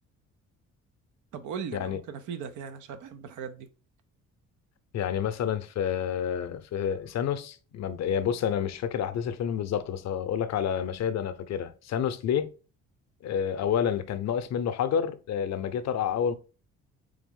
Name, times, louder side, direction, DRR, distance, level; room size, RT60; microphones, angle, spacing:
voice 1, 1.3-3.7, right 7 dB, 80° right, 0.6 m, -38 dB
voice 2, 4.9-12.5 13.2-16.3, left 8 dB, 60° left, 0.6 m, -29 dB
3.5 x 3.4 x 3.6 m
cardioid pair, 90°, 30 cm